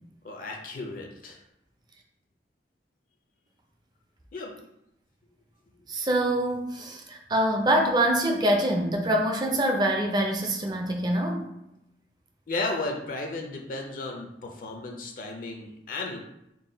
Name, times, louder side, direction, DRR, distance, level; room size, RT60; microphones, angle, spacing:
voice 1, 0.2-1.4 4.3-4.6 12.5-16.2, left 2 dB, 50° left, 2 dB, 0.5 m, -34 dB
voice 2, 5.9-11.4, right 1 dB, 25° right, 2 dB, 0.5 m, -25 dB
3.9 x 2.2 x 3.8 m, 0.83 s
head